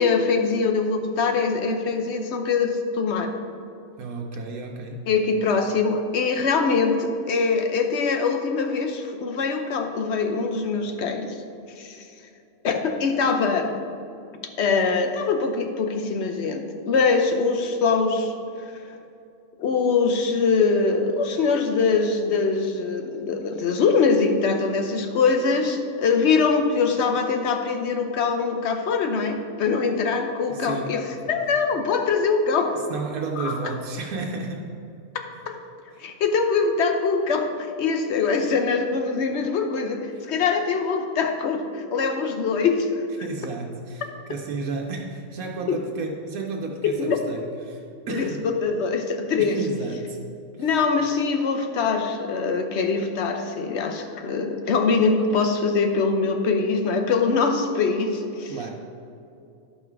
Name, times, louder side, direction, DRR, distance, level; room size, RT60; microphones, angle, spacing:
voice 1, 0.0-3.3 5.1-11.3 11.8-12.0 12.6-13.8 14.6-18.3 19.6-32.8 33.4-33.7 35.5-35.6 36.0-42.9 47.0-47.2 48.1-49.6 50.6-58.5, left 4 dB, 55° left, 5 dB, 1.0 m, -23 dB
voice 2, 4.0-5.1 30.5-31.0 32.7-34.7 40.1-40.2 43.2-48.4 49.4-50.2 50.5-50.7 58.5-58.7, right 4 dB, 85° right, 1 dB, 1.2 m, -32 dB
11.5 x 5.6 x 4.6 m, 2.6 s
omnidirectional pair, 1.5 m